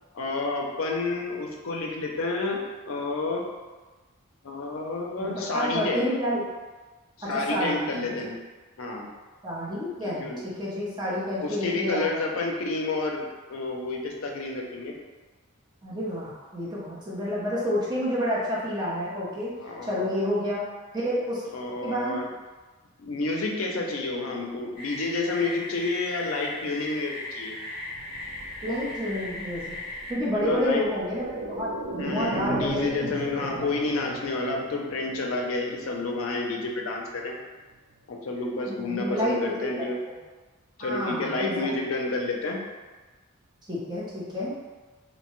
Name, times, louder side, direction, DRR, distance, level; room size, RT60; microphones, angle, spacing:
voice 1, 0.1-2.6 2.9-3.4 4.4-6.1 7.3-8.4 8.8-9.1 10.1-10.4 11.4-14.9 19.6-20.1 21.5-22.3 23.0-27.6 30.3-30.8 32.0-37.3 38.1-40.0 40.8-42.6, left 3 dB, 70° left, 0 dB, 0.5 m, -30 dB
voice 2, 5.2-6.4 7.2-8.1 9.4-12.1 15.8-19.5 19.8-20.6 20.9-21.4 21.8-22.2 28.6-29.8 30.1-33.7 38.7-39.9 40.8-41.7 43.7-44.5, equal, 20° right, -7 dB, 0.6 m, -29 dB
sound 1, 24.8-30.1, left 2 dB, 25° left, 1.1 m, -38 dB
sound 2, 27.6-37.4 37.7-37.8, right 1 dB, 60° right, 0.4 m, -38 dB
2.7 x 2.1 x 2.9 m, 1.3 s
head